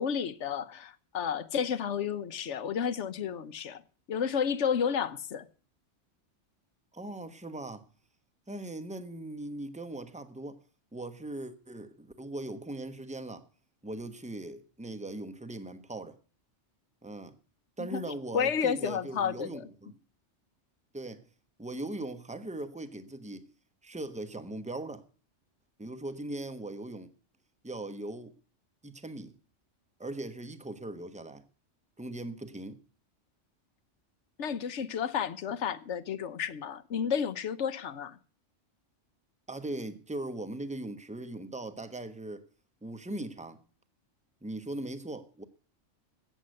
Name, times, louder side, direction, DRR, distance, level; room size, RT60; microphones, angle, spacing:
voice 1, 0.0-3.8 4.1-5.5 17.8-19.6 34.4-38.2, left 7 dB, 75° left, 1.2 m, -31 dB
voice 2, 6.9-7.8 8.5-10.6 10.9-13.4 13.8-16.2 17.0-17.3 17.8-20.0 20.9-21.2 21.6-23.5 23.8-25.0 25.8-27.1 27.6-28.3 28.8-29.4 30.0-31.4 32.0-32.8 39.5-42.4 42.8-43.6 44.4-45.4, right 2 dB, 5° right, 1.1 m, -39 dB
14.0 x 8.6 x 6.5 m
omnidirectional pair, 1.2 m